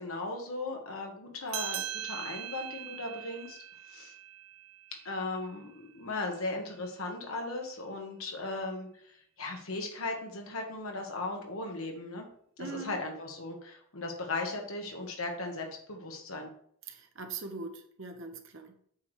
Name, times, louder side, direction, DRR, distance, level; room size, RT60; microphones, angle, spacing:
voice 1, 0.0-3.6 3.9-4.1 5.1-12.3 12.6-16.5, left 2 dB, 85° left, 2 dB, 1.6 m, -37 dB
sound 1, 1.5-6.4, right 11 dB, 80° right, 0.6 m, -41 dB
voice 2, 12.6-13.0 16.9-18.9, right 4 dB, 65° right, 4 dB, 1.0 m, -42 dB
8.2 x 3.4 x 6.4 m, 0.64 s
head